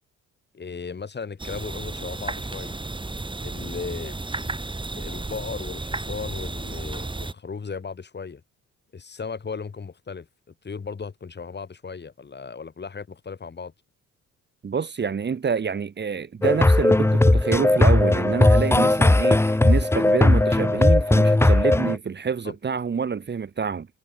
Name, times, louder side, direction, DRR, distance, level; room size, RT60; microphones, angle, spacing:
voice 1, 0.5-2.8 3.4-4.2 4.9-8.4 8.9-13.7 22.4-22.5, left 5 dB, 35° left, 4.5 m, -36 dB
sound 1, 1.4-7.3, right 2 dB, 15° right, 3.0 m, -33 dB
voice 2, 14.6-23.9, right 6 dB, 35° right, 1.7 m, -27 dB
sound 2, 16.4-22.0, left 2 dB, 10° left, 0.9 m, -18 dB
cardioid pair, 90°, 30 cm